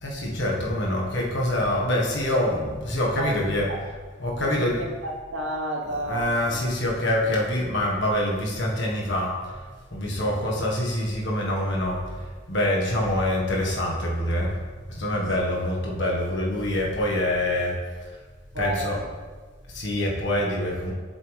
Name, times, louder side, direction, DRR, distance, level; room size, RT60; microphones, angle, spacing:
voice 1, 0.0-3.7 4.2-4.8 5.8-9.6 9.9-14.6 14.9-17.8 18.0-18.1 18.5-19.0 19.7-20.9, left 1 dB, 60° left, -2 dB, 1.6 m, -25 dB
voice 2, 4.4-6.6 7.2-7.3 10.2-10.4 18.5-18.9, right 2 dB, 75° right, 0 dB, 1.3 m, -32 dB
7.4 x 7.2 x 3.4 m, 1.4 s
head